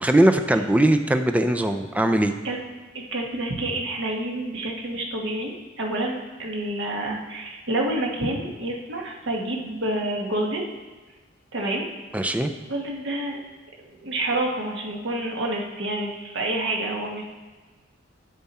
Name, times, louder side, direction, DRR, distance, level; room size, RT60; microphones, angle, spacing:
voice 1, 0.0-2.3 12.1-12.5, right 1 dB, 10° right, 7 dB, 0.5 m, -20 dB
voice 2, 2.9-10.7 11.5-11.9 12.6-13.4 13.8-17.2, right 1 dB, 70° right, -1 dB, 1.4 m, -28 dB
9.1 x 7.2 x 4.3 m, 1.3 s
head